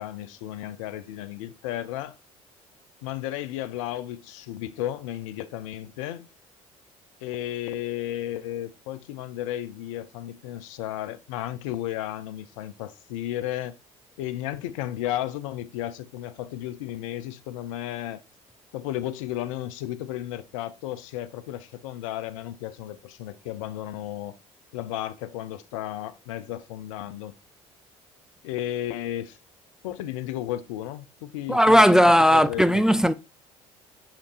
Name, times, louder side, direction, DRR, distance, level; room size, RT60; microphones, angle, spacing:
voice 1, 0.0-2.2 3.0-6.3 7.2-13.8 14.2-18.2 18.7-24.4 24.7-27.3 28.4-29.4 29.8-31.8 32.3-32.8, left 13 dB, 70° left, 0.5 m, -33 dB
voice 2, 31.5-33.1, equal, 5° right, 0.4 m, -17 dB
6.4 x 5.8 x 2.5 m
figure-of-eight pair, 55°, 17 cm